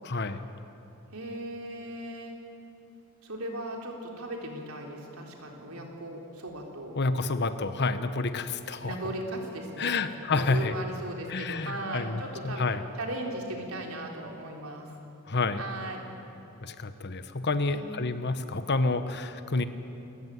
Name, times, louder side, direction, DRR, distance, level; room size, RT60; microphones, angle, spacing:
voice 1, 0.0-0.5 6.9-8.9 9.8-10.7 11.3-12.8 15.3-15.6 16.6-19.6, left 3 dB, 55° left, 10 dB, 1.2 m, -29 dB
voice 2, 1.1-2.4 3.2-7.0 8.8-10.0 10.3-12.7 13.0-14.9 15.6-16.0 17.6-17.9, right 1 dB, 85° right, 1 dB, 3.9 m, -37 dB
29.0 x 14.5 x 9.4 m, 2.9 s
head